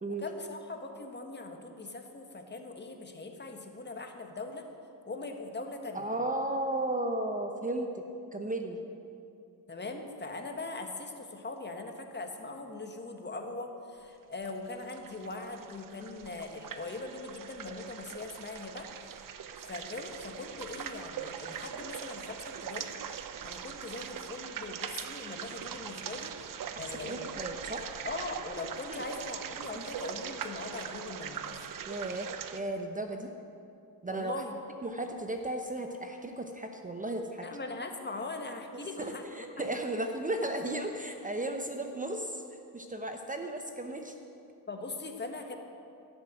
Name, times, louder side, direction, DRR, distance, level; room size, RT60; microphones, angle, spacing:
voice 1, 0.1-4.6 5.1-6.1 9.7-18.9 19.6-23.0 23.4-26.3 26.8-27.2 28.0-31.6 34.1-34.5 37.4-39.2 39.6-39.7 44.7-45.6, left 3 dB, 25° left, 4 dB, 1.5 m, -41 dB
voice 2, 5.9-8.0 8.3-8.8 27.0-27.8 28.9-29.0 29.7-29.8 31.9-33.3 34.0-34.3 34.8-37.5 38.7-42.4 42.7-44.1, right 1 dB, 20° right, 4 dB, 0.9 m, -35 dB
sound 1, 14.4-32.6, right 8 dB, 55° right, 0.8 m, -41 dB
16.0 x 6.9 x 7.8 m, 2.6 s
cardioid pair, 95°, 40 cm